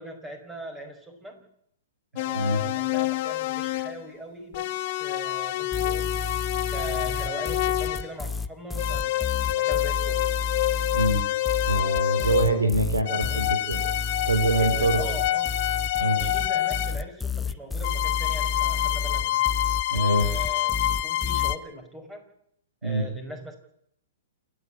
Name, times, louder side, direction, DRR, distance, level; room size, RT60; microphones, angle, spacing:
voice 1, 0.0-1.5 2.1-6.3 6.7-10.3 14.6-15.6 16.0-19.5 19.9-22.3 22.8-23.6, right 1 dB, 10° right, 6 dB, 5.3 m, -40 dB
sound 1, 2.2-4.0 4.5-8.1 8.7-12.7 13.0-17.0 17.8-21.6, left 15 dB, 45° left, 1.3 m, -27 dB
sound 2, 5.7-21.5, left 4 dB, 5° left, 0.8 m, -31 dB
voice 2, 11.7-13.8 14.3-15.0 16.0-16.2 19.9-20.3 22.8-23.1, right 1 dB, 85° right, 8 dB, 4.4 m, -24 dB
28.5 x 10.0 x 10.0 m, 0.72 s
figure-of-eight pair, 115°, 0 cm